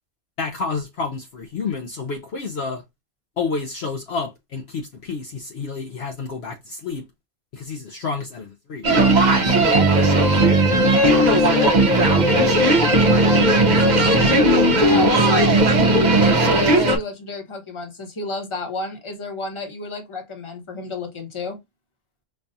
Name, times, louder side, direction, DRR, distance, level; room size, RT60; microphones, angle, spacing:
voice 1, 0.4-2.8 3.4-7.0 7.5-8.9, left 4 dB, 60° left, 0.8 m, -29 dB
sound 1, 8.8-17.0, right 1 dB, 40° right, 0.8 m, -16 dB
voice 2, 9.6-11.8 12.1-14.4 14.9-15.6 16.0-21.6, left 2 dB, 25° left, 1.0 m, -31 dB
5.3 x 2.4 x 2.6 m
omnidirectional pair, 1.3 m